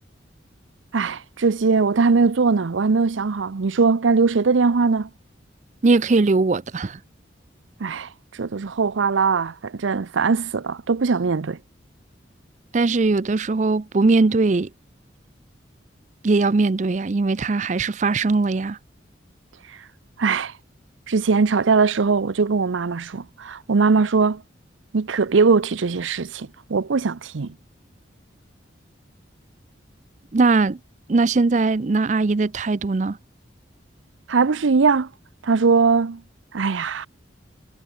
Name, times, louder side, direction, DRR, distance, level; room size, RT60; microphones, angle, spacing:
voice 1, 0.9-5.1 7.8-11.6 20.2-20.5 21.1-24.4 24.9-27.5 34.3-35.1 35.4-36.2 36.5-37.1, right 4 dB, 85° right, 0.6 m, -20 dB
voice 2, 5.8-7.0 12.7-14.7 16.2-18.8 30.3-30.8 31.1-33.2, right 3 dB, 40° right, 0.5 m, -20 dB
head